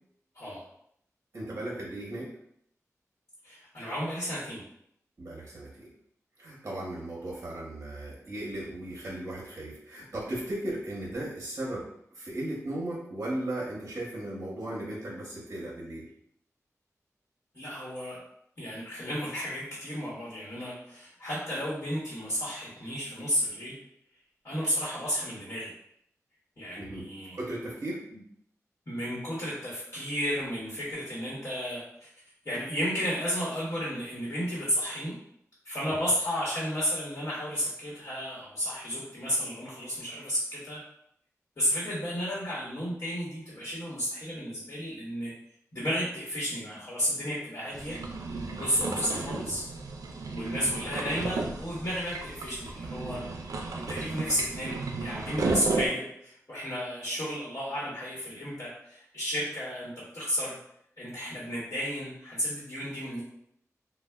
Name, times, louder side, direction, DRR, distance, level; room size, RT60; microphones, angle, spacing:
voice 1, 1.3-2.3 5.2-5.9 6.4-11.9 12.1-16.1 26.8-27.0 27.3-28.0 49.1-49.3, right 1 dB, 55° right, -3 dB, 0.7 m, -36 dB
voice 2, 3.4-4.6 17.5-18.2 18.6-23.8 24.4-25.7 26.6-27.4 28.1-28.2 28.9-32.1 32.4-35.1 35.6-40.8 41.6-45.3 45.7-48.0 48.6-49.6 50.3-53.2 53.8-60.6 61.0-63.2, equal, 55° left, -8 dB, 1.0 m, -32 dB
sound 1, 47.7-55.9, right 3 dB, 85° right, 0.4 m, -34 dB
3.3 x 2.1 x 2.2 m, 0.72 s
wide cardioid pair, 60°, 6 cm